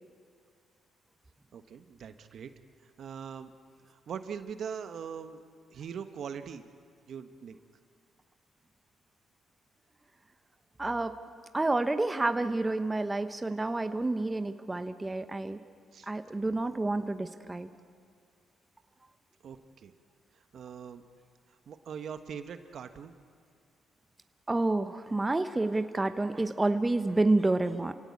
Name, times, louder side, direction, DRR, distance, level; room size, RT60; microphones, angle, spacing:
voice 1, 1.5-2.5 3.0-3.5 3.9-5.4 5.7-6.6 7.1-7.6 15.9-16.1 19.4-19.9 20.5-21.0 21.7-23.1, right 7 dB, 60° right, 9 dB, 1.3 m, -41 dB
voice 2, 10.8-11.1 11.5-15.6 16.1-17.7 24.5-27.9, right 2 dB, 20° right, 9 dB, 1.0 m, -29 dB
28.0 x 17.5 x 8.5 m, 2.2 s
cardioid pair, 80°, 0 cm